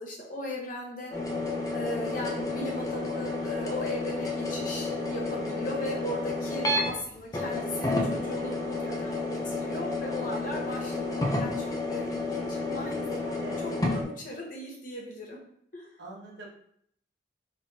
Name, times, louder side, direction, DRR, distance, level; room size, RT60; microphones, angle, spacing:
voice 1, 0.0-1.4 1.7-13.4 13.6-15.4 15.7-15.9, left 1 dB, 50° left, -2 dB, 1.1 m, -38 dB
sound 1, 1.1-6.9 7.3-14.0, left 2 dB, 20° left, 0.6 m, -31 dB
voice 2, 13.3-13.7 16.0-16.5, right 2 dB, 75° right, -2 dB, 1.2 m, -44 dB
4.4 x 3.3 x 2.9 m, 0.68 s
head